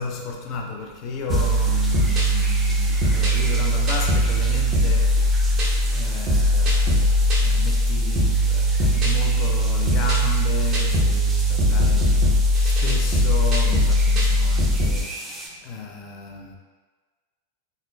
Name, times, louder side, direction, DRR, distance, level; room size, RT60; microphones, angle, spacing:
voice 1, 0.0-12.3 12.6-16.6, left 4 dB, 40° left, 2 dB, 0.5 m, -33 dB
sound 1, 1.3-15.5, right 2 dB, 15° right, 0.4 m, -37 dB
sound 2, 1.3-15.0, equal, 35° right, 0.8 m, -20 dB
3.8 x 3.1 x 2.2 m, 1.4 s
figure-of-eight pair, 90°, 0 cm